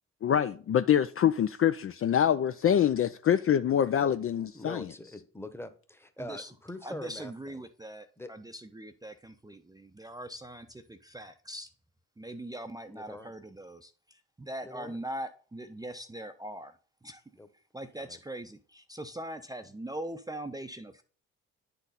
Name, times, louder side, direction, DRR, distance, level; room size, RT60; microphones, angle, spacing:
voice 1, 0.2-4.9, left 9 dB, 40° left, 0.5 m, -25 dB
voice 2, 4.5-7.3 8.2-8.3 12.9-13.3 14.6-15.0 17.4-17.5 18.0-18.2, left 1 dB, 5° left, 1.1 m, -43 dB
voice 3, 6.2-6.5 6.8-11.7 12.2-16.8 17.0-17.2 17.7-21.0, right 1 dB, 10° right, 0.6 m, -41 dB
9.7 x 4.0 x 4.1 m
hypercardioid pair, 50°, 34 cm